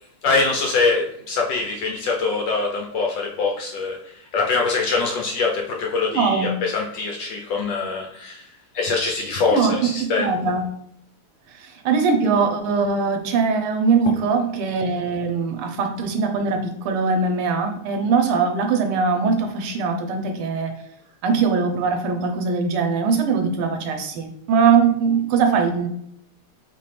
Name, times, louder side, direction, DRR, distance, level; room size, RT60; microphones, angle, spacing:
voice 1, 0.2-8.5 8.7-10.3, left 4 dB, 75° left, 0 dB, 1.1 m, -23 dB
voice 2, 6.1-6.6 9.5-10.7 11.5-20.8 21.2-25.9, right 5 dB, 80° right, 5 dB, 1.6 m, -21 dB
4.2 x 3.8 x 3.2 m, 0.73 s
omnidirectional pair, 2.4 m